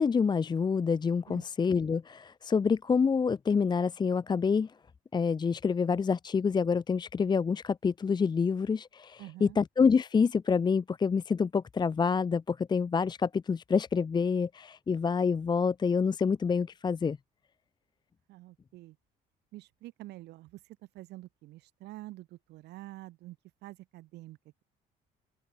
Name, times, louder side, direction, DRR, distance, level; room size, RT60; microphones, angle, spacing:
voice 1, 0.0-4.7 5.1-17.2, left 5 dB, 25° left, 0.7 m, -27 dB
voice 2, 9.2-9.6 18.3-19.0 19.5-23.4 23.6-24.6, right 17 dB, 80° right, 2.3 m, -47 dB
open air
cardioid pair, 110°, 17 cm